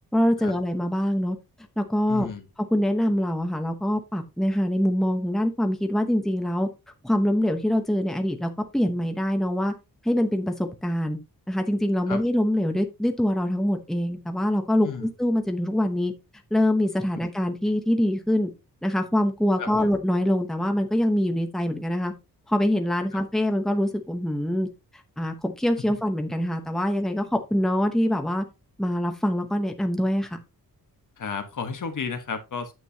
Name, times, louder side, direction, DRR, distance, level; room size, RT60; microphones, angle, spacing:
voice 1, 0.1-1.4 1.8-2.3 2.7-6.7 7.0-9.7 10.0-11.2 11.5-16.1 16.5-18.5 18.8-22.1 22.5-24.7 25.2-28.4 28.8-30.4, left 1 dB, ahead, 1.0 m, -24 dB
voice 2, 2.1-2.4 12.1-12.2 14.8-15.1 19.6-19.9 23.1-23.2 31.2-32.7, left 5 dB, 55° left, 1.5 m, -33 dB
9.4 x 7.8 x 2.9 m
wide cardioid pair, 175°, 36 cm